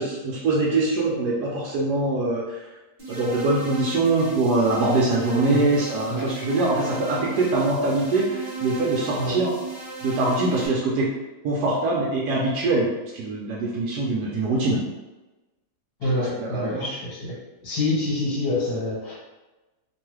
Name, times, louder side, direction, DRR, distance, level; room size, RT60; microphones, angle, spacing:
voice 1, 0.0-2.6 3.1-9.5 10.0-11.1 11.4-12.9 13.1-14.8 16.1-16.9, right 2 dB, 80° right, -4 dB, 1.1 m, -23 dB
sound 1, 3.0-10.7, right 3 dB, 35° right, 1.4 m, -35 dB
voice 2, 5.4-5.7 6.1-6.3 9.2-9.4 16.0-17.3 17.6-19.1, left 1 dB, 65° left, -7 dB, 1.5 m, -26 dB
3.0 x 2.2 x 3.1 m, 1.1 s
omnidirectional pair, 1.8 m